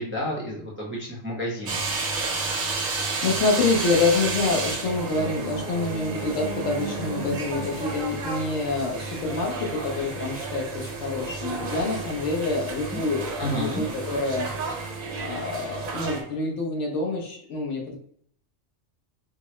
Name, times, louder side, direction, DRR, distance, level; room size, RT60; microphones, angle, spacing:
voice 1, 0.0-1.8 12.9-13.0 13.4-13.8, equal, 15° right, -4 dB, 0.6 m, -30 dB
sound 1, 1.7-16.2, right 3 dB, 85° right, 1.2 m, -32 dB
voice 2, 3.2-14.5 15.2-18.0, left 3 dB, 70° left, 0 dB, 1.1 m, -27 dB
sound 2, 4.3-9.4, right 2 dB, 50° right, 0.7 m, -37 dB
4.5 x 2.0 x 3.1 m, 0.64 s
omnidirectional pair, 1.3 m